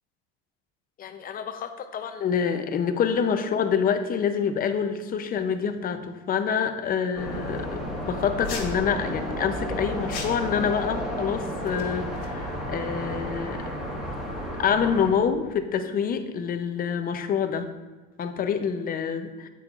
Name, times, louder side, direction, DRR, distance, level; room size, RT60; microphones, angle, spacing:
voice 1, 1.0-13.6 14.6-17.7 18.2-19.5, left 7 dB, 30° left, 8 dB, 0.6 m, -27 dB
sound 1, 7.2-15.1, equal, ahead, 1.5 m, -32 dB
sound 2, 8.4-8.8 10.1-10.5 11.6-12.3, left 5 dB, 55° left, 1.5 m, -37 dB
8.6 x 8.4 x 2.4 m, 1.3 s
cardioid pair, 140°, 30 cm